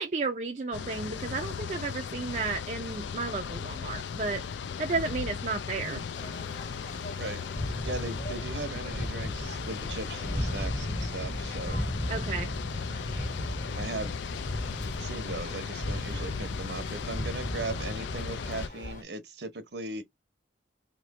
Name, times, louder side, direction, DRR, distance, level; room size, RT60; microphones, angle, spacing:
voice 1, 0.0-4.4 4.8-6.0 12.1-12.5, right 4 dB, 40° right, 0.4 m, -33 dB
sound 1, 0.7-18.7, left 6 dB, 75° left, 0.4 m, -37 dB
sound 2, 6.1-19.0, left 1 dB, 45° left, 1.1 m, -44 dB
sound 3, 7.5-18.2, equal, 5° left, 0.7 m, -36 dB
voice 2, 7.8-11.8 13.8-14.1 15.0-20.0, right 3 dB, 70° right, 0.9 m, -38 dB
3.1 x 2.9 x 4.1 m
head